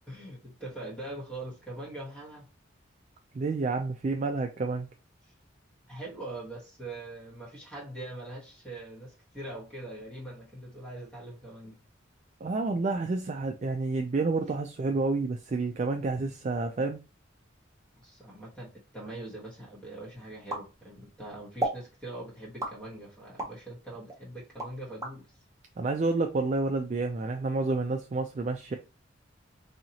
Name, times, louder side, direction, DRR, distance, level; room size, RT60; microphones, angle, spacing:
voice 1, 0.1-2.5 5.2-5.3 5.9-11.8 17.9-25.3, right 1 dB, 5° left, 1.1 m, -42 dB
voice 2, 3.3-4.9 12.4-17.0 25.8-28.7, right 3 dB, 35° right, 0.3 m, -29 dB
sound 1, 20.5-21.2 21.6-21.9 22.6-23.6 24.1-25.2, right 2 dB, 15° right, 0.8 m, -34 dB
4.3 x 2.8 x 2.8 m
head